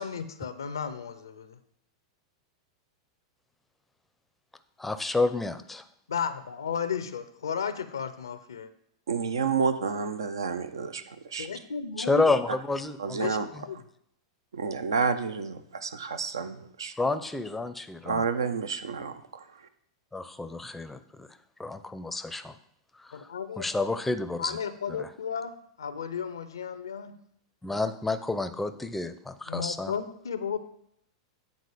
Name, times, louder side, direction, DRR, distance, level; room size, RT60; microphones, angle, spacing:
voice 1, 0.0-1.6 6.1-8.7 11.4-12.3 13.2-13.8 23.1-23.6 24.4-27.1 29.5-30.6, left 7 dB, 80° left, 12 dB, 0.5 m, -34 dB
voice 2, 4.8-5.8 12.0-13.2 13.5-13.6 17.0-18.2 20.1-21.3 21.6-22.5 23.0-23.2 23.6-24.6 24.9-25.1 27.6-29.9, left 3 dB, 5° left, 11 dB, 0.5 m, -29 dB
voice 3, 9.1-11.5 13.0-13.5 14.5-16.9 18.1-19.7, right 5 dB, 75° right, 10 dB, 0.6 m, -30 dB
8.5 x 3.9 x 4.9 m, 0.71 s
figure-of-eight pair, 95°, 2 cm